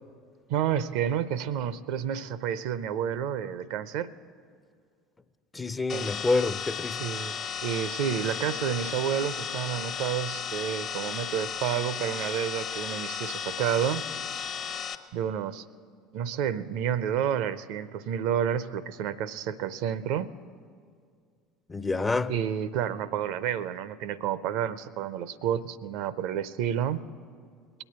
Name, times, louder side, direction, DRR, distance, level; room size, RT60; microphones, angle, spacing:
voice 1, 0.5-4.1 5.9-6.1 7.0-7.3 7.6-14.0 15.1-15.6 16.1-20.3 22.3-27.1, right 9 dB, 60° right, 0.5 m, -30 dB
voice 2, 5.5-7.0 21.7-22.3, left 3 dB, 20° left, 0.5 m, -27 dB
sound 1, 5.9-14.9, left 7 dB, 45° left, 0.9 m, -35 dB
20.5 x 8.8 x 7.8 m
figure-of-eight pair, 65°, 0 cm